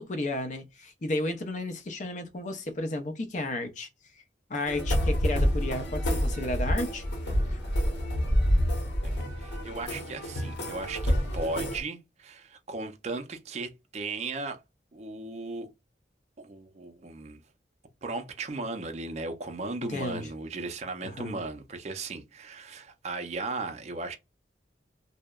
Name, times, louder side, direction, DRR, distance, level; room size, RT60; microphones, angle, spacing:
voice 1, 0.0-3.9 4.5-7.0 7.5-7.6 19.9-20.2 21.0-21.4, left 2 dB, 45° left, 0.5 m, -33 dB
sound 1, 4.7-11.8, equal, 75° left, 0.9 m, -28 dB
voice 2, 9.0-14.6 14.9-15.7 16.4-17.4 18.0-24.1, right 3 dB, 40° right, 0.4 m, -36 dB
2.7 x 2.0 x 2.2 m
head